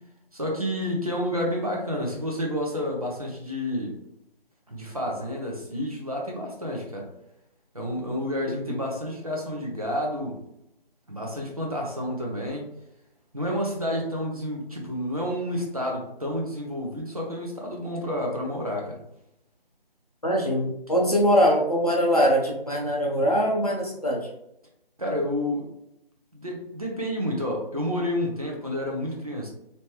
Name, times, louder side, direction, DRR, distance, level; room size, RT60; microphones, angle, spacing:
voice 1, 0.3-4.0 4.7-7.1 7.7-10.4 11.1-12.7 13.3-19.0 25.0-25.7 26.3-29.5, equal, 40° right, -1 dB, 0.8 m, -30 dB
voice 2, 20.2-24.3, equal, 40° left, -2 dB, 0.7 m, -22 dB
3.2 x 2.9 x 3.2 m, 0.82 s
figure-of-eight pair, 180°, 29 cm